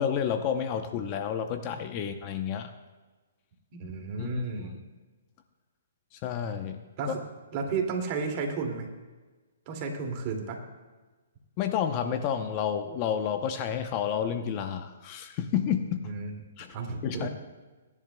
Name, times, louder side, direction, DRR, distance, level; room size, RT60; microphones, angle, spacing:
voice 1, 0.0-2.7 4.2-4.6 6.1-6.8 11.6-16.1 16.6-16.7 17.0-17.3, left 8 dB, 30° left, 7 dB, 0.7 m, -30 dB
voice 2, 3.7-4.8 7.0-7.2 7.5-8.9 9.7-10.6 16.0-16.4 16.7-17.3, right 4 dB, 35° right, 2 dB, 2.3 m, -33 dB
27.5 x 11.0 x 2.2 m, 1.3 s
hypercardioid pair, 150°, 0 cm